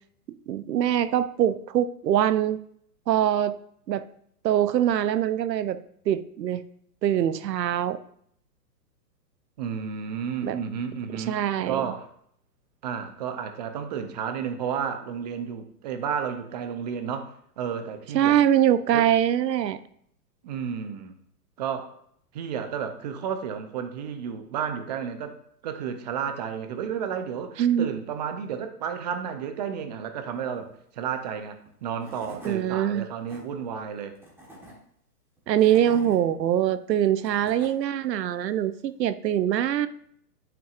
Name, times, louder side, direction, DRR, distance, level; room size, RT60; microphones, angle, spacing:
voice 1, 0.5-2.6 3.1-3.5 3.9-4.0 4.4-5.8 6.1-6.6 7.0-8.0 10.4-10.6 11.1-11.8 18.1-19.8 27.6-27.9 32.4-33.1 35.5-39.9, right 10 dB, 85° right, 14 dB, 0.7 m, -23 dB
voice 2, 9.6-11.4 11.7-12.1 12.8-18.4 18.9-19.1 20.4-21.2 21.6-21.9 22.3-25.3 25.6-30.7 30.9-34.2, right 7 dB, 25° right, 8 dB, 0.5 m, -32 dB
Tools / Wood, 31.7-31.8 32.0-32.6 33.0-33.4 34.2-34.7 35.4-36.2 36.9-37.7, equal, 5° right, 1.3 m, -46 dB
10.5 x 5.9 x 2.5 m, 0.66 s
hypercardioid pair, 145°, 49 cm